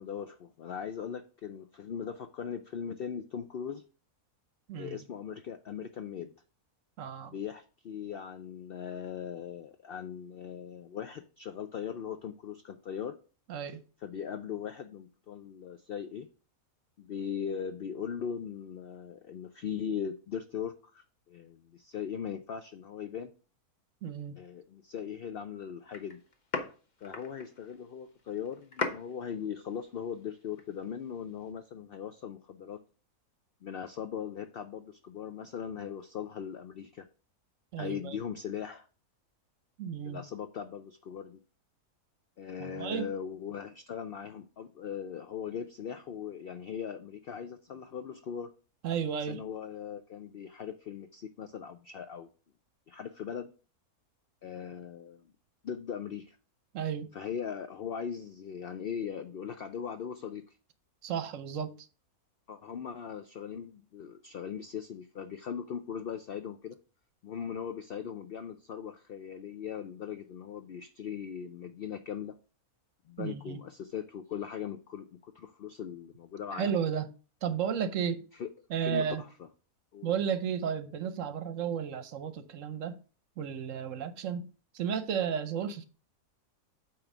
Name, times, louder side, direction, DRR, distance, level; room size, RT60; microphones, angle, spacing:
voice 1, 0.0-3.8 4.8-6.3 7.2-13.2 14.0-16.3 17.0-23.3 24.3-26.2 27.0-32.8 33.6-37.1 37.8-38.9 40.0-41.4 42.4-48.5 49.2-52.3 52.9-53.5 54.4-55.3 55.6-56.4 57.1-60.4 62.5-66.8 67.2-72.3 73.1-76.7 78.3-78.5 78.8-79.3 79.9-80.1, left 8 dB, 75° left, 0.5 m, -39 dB
voice 2, 4.7-5.0 7.0-7.3 13.5-13.8 24.0-24.4 37.7-38.2 39.8-40.2 42.6-43.1 48.8-49.4 56.7-57.1 61.0-61.7 73.2-73.6 76.5-77.1 77.4-78.2 78.7-79.2 80.0-83.0 83.4-84.5 84.7-85.9, right 7 dB, 65° right, 1.0 m, -33 dB
sound 1, 25.9-31.5, left 4 dB, 35° left, 0.9 m, -41 dB
8.7 x 3.1 x 6.0 m
omnidirectional pair, 1.6 m